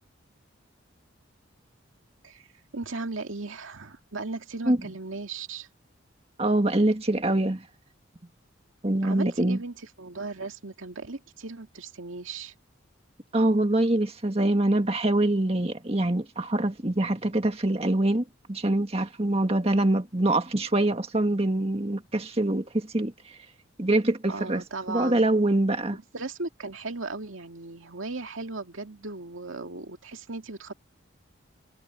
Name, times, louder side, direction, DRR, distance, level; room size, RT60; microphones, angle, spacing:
voice 1, 2.7-5.7 9.0-12.5 24.3-25.3 25.9-30.7, right 3 dB, 80° right, 2.2 m, -37 dB
voice 2, 6.4-7.6 8.8-9.6 13.3-23.4 23.8-24.6 24.9-26.0, right 1 dB, 30° right, 1.9 m, -24 dB
head